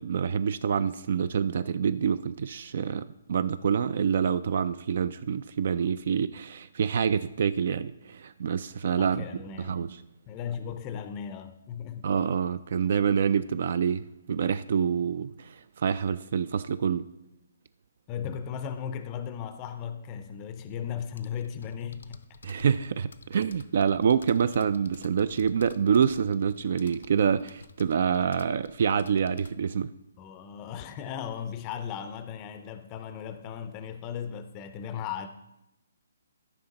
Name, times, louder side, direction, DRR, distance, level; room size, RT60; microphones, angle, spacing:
voice 1, 0.0-9.2 9.6-10.0 12.0-17.1 22.4-29.9, right 7 dB, 55° right, 0.3 m, -27 dB
voice 2, 9.0-9.8 10.3-12.0 18.1-22.2 30.2-35.3, left 8 dB, 20° left, 0.5 m, -36 dB
sound 1, 21.0-29.5, left 4 dB, 80° left, 0.7 m, -51 dB
13.5 x 5.8 x 4.0 m
hypercardioid pair, 160°, 0 cm